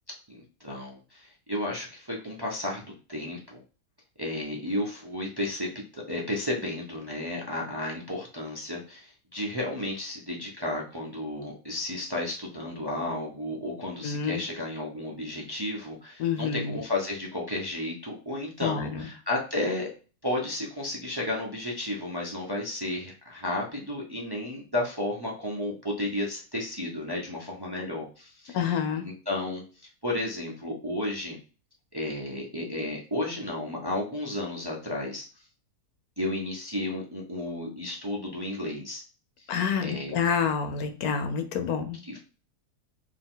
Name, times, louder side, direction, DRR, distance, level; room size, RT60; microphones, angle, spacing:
voice 1, 0.3-3.6 4.2-5.7 5.9-19.9 20.2-28.6 29.0-29.6 30.0-31.4 31.9-35.2 36.2-39.0 39.8-40.1 42.1-42.2, left 1 dB, 20° right, -2 dB, 0.7 m, -33 dB
voice 2, 14.0-14.4 16.2-16.8 18.6-19.1 28.5-29.0 39.5-42.0, left 7 dB, 70° left, 7 dB, 1.2 m, -28 dB
4.7 x 2.9 x 3.7 m, 0.36 s
omnidirectional pair, 1.7 m